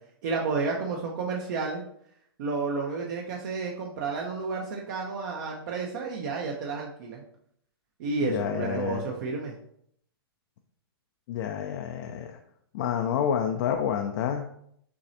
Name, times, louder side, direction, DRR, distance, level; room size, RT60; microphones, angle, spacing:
voice 1, 0.2-1.8 2.4-7.2 8.0-9.5, right 4 dB, 50° right, -1 dB, 0.8 m, -31 dB
voice 2, 8.2-9.0 11.3-12.4 12.7-14.5, left 8 dB, 45° left, 4 dB, 0.5 m, -29 dB
6.0 x 3.1 x 2.8 m, 0.69 s
hypercardioid pair, 140°, 13 cm